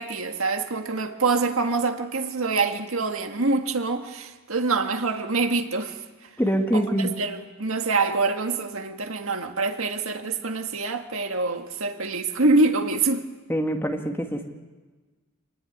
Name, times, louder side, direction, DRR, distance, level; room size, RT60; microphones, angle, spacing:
voice 1, 0.0-6.3 6.7-13.2, right 3 dB, 70° right, 6 dB, 1.8 m, -25 dB
voice 2, 6.4-7.2 13.5-14.4, equal, 10° left, 3 dB, 2.0 m, -24 dB
26.0 x 19.5 x 9.5 m, 1.3 s
head